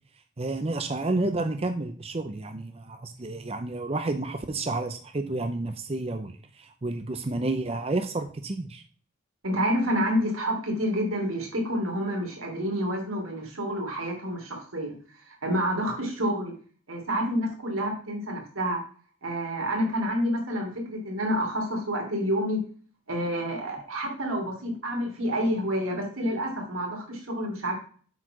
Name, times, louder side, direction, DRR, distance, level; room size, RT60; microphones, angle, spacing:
voice 1, 0.4-8.8, right 2 dB, 30° right, 7 dB, 0.6 m, -30 dB
voice 2, 9.4-14.9 15.3-16.5 16.9-18.8 19.2-22.6 23.1-27.8, equal, 90° right, 1 dB, 3.1 m, -28 dB
8.0 x 4.8 x 6.0 m, 0.43 s
head